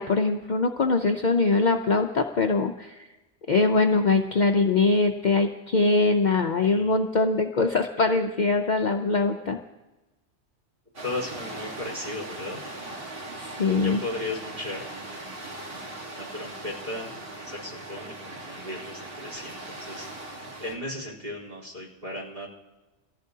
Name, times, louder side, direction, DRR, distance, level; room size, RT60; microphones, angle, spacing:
voice 1, 0.0-3.0 3.5-9.6 13.4-14.0, left 3 dB, 50° left, 4 dB, 0.6 m, -22 dB
voice 2, 6.6-7.0 11.0-12.6 13.8-15.4 16.1-20.3 20.6-22.5, left 2 dB, 35° right, -4 dB, 3.8 m, -36 dB
sound 1, 10.9-20.7, right 2 dB, 55° right, 1.8 m, -39 dB
23.0 x 15.0 x 2.8 m, 1.1 s
omnidirectional pair, 1.2 m